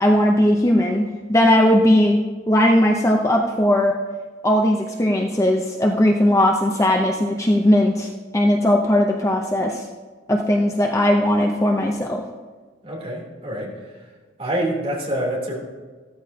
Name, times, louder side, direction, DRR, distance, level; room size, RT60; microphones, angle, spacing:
voice 1, 0.0-2.2 2.5-4.0 4.4-9.8 10.3-12.2, left 1 dB, 15° left, 1 dB, 0.7 m, -18 dB
voice 2, 12.8-13.7 14.4-15.6, right 1 dB, 30° right, -4 dB, 3.2 m, -26 dB
15.0 x 13.5 x 2.8 m, 1.4 s
head